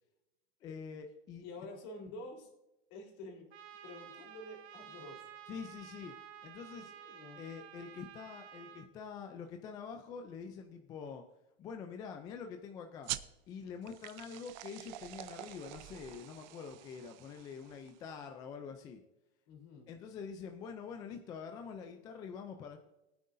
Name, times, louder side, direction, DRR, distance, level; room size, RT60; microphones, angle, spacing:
voice 1, 0.6-1.4 5.5-6.1 6.4-6.9 7.4-11.2 11.6-13.1 13.5-19.0 19.9-22.8, left 6 dB, 10° left, 5 dB, 0.3 m, -46 dB
voice 2, 1.4-2.5 2.9-3.5 3.8-5.2 6.7-7.4 19.5-19.9, left 2 dB, 45° left, 1 dB, 3.5 m, -49 dB
Trumpet, 3.5-8.9, right 9 dB, 80° right, 1.4 m, -52 dB
sound 1, 13.0-18.1, right 15 dB, 45° right, 0.6 m, -46 dB
19.0 x 9.3 x 2.6 m, 0.93 s
supercardioid pair, 150°, 32 cm